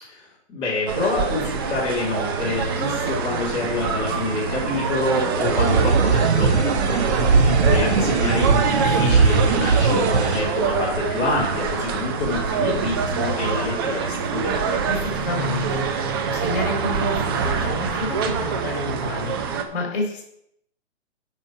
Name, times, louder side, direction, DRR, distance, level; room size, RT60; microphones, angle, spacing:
voice 1, 0.0-14.6, left 2 dB, 15° left, -8 dB, 2.5 m, -27 dB
sound 1, 0.9-19.6, right 5 dB, 20° right, 0.6 m, -25 dB
sound 2, 5.4-10.4, right 4 dB, 65° right, 1.4 m, -20 dB
voice 2, 7.4-7.9 14.9-20.2, left 2 dB, 45° left, 1 dB, 3.7 m, -30 dB
9.0 x 5.5 x 6.0 m, 0.74 s
hypercardioid pair, 150°, 35 cm